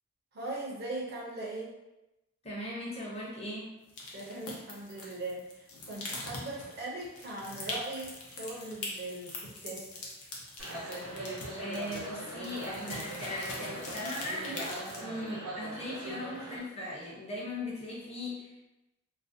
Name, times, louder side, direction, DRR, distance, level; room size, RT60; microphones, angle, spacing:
voice 1, 0.3-1.7 4.1-10.0, right 2 dB, 45° right, -4 dB, 0.4 m, -40 dB
voice 2, 2.4-3.7 11.6-18.7, left 1 dB, 25° left, -5 dB, 0.5 m, -39 dB
sound 1, 3.9-15.0, left 2 dB, 90° left, 0.6 m, -43 dB
sound 2, 10.6-16.6, right 1 dB, 90° right, 0.7 m, -41 dB
2.4 x 2.0 x 2.5 m, 0.97 s
head